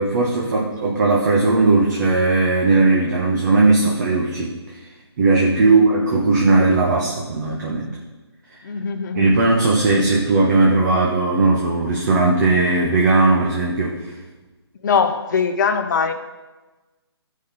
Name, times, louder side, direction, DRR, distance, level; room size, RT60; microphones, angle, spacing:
voice 1, 0.0-4.5 5.2-7.9 9.1-14.1, right 3 dB, 40° right, -2 dB, 1.2 m, -17 dB
voice 2, 8.6-9.3 14.8-16.1, left 6 dB, 45° left, 6 dB, 0.9 m, -21 dB
13.5 x 5.3 x 4.1 m, 1.2 s
hypercardioid pair, 160°, 14 cm